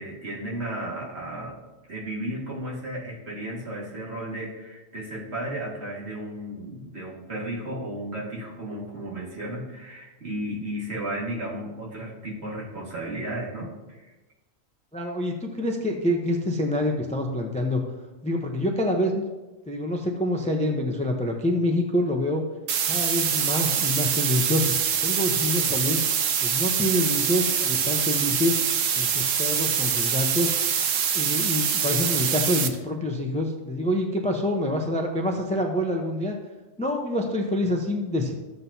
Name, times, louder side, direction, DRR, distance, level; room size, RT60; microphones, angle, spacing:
voice 1, 0.0-1.6 1.9-14.1, right 1 dB, 55° right, -4 dB, 2.2 m, -34 dB
voice 2, 14.9-17.8 18.2-19.2 19.7-22.4 22.9-26.0 26.4-28.6 29.0-30.5 31.1-36.4 36.8-38.3, left 1 dB, 5° left, 2 dB, 0.6 m, -26 dB
sound 1, 22.7-32.7, right 8 dB, 75° right, 1.1 m, -24 dB
13.5 x 7.5 x 2.8 m, 1.1 s
omnidirectional pair, 1.3 m